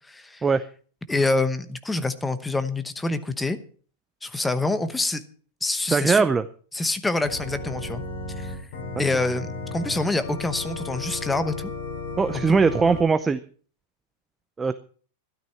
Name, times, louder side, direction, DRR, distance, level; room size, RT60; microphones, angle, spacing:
voice 1, 0.1-0.4 1.1-3.6 4.2-5.2 5.6-6.2 6.7-8.0 8.4-8.6 9.0-11.7 12.3-12.4, left 2 dB, 5° left, 11 dB, 0.9 m, -26 dB
voice 2, 5.9-6.4 12.2-13.4 14.6-14.7, right 4 dB, 10° right, 12 dB, 0.5 m, -20 dB
Organ, 7.2-13.0, left 3 dB, 55° left, 7.9 m, -34 dB
13.0 x 12.0 x 5.7 m, 0.42 s
supercardioid pair, 165°, 0 cm